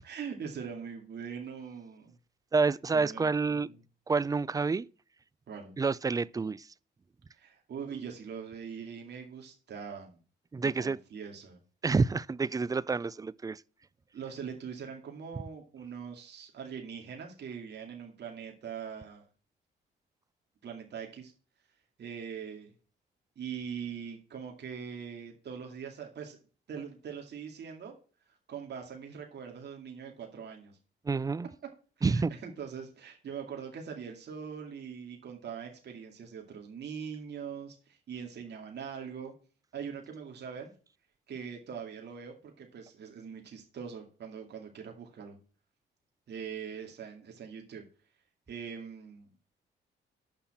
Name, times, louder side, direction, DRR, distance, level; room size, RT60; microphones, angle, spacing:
voice 1, 0.0-2.1 2.9-3.8 5.5-5.7 7.3-10.2 10.6-11.6 14.1-19.3 20.6-21.3 22.0-22.7 23.4-26.4 26.7-28.0 28.5-30.8 32.0-39.3 39.7-40.7 41.3-45.4 46.3-47.8 48.5-49.3, right 7 dB, 60° right, 2.4 m, -42 dB
voice 2, 2.5-3.7 4.1-4.9 5.8-6.7 10.5-11.0 11.8-13.6 31.1-31.5 32.0-32.3, right 4 dB, 20° right, 0.4 m, -28 dB
7.1 x 5.7 x 7.3 m
cardioid pair, 90°, 20 cm